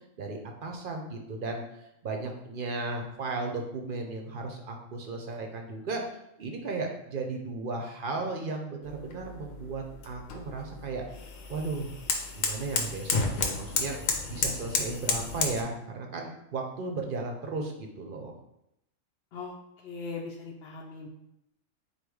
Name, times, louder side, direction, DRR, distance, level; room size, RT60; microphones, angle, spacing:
voice 1, 0.2-6.0 6.4-11.0 11.5-11.9 12.3-14.0 14.3-18.4, right 3 dB, 55° right, 2 dB, 0.7 m, -35 dB
sound 1, 8.8-15.6, left 4 dB, 85° left, 1.1 m, -32 dB
voice 2, 19.8-21.1, left 4 dB, 60° left, -2 dB, 0.7 m, -39 dB
4.0 x 2.8 x 4.7 m, 0.81 s
omnidirectional pair, 1.4 m